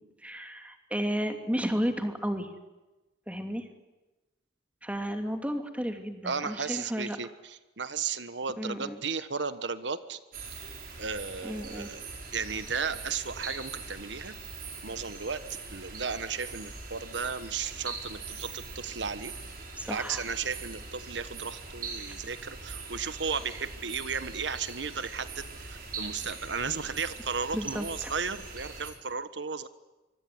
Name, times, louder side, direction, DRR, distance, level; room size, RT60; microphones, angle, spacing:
voice 1, 0.2-2.5 3.3-3.7 4.8-7.2 8.6-9.0 11.4-11.9 19.8-20.2 27.5-28.1, equal, 10° right, 5 dB, 2.7 m, -33 dB
voice 2, 6.2-10.2 11.0-12.0 12.3-14.3 14.8-15.4 15.7-19.3 19.9-29.7, right 5 dB, 80° right, 12 dB, 1.3 m, -34 dB
sound 1, 10.3-28.9, right 4 dB, 55° right, 5.8 m, -42 dB
25.0 x 24.5 x 9.6 m, 1.1 s
head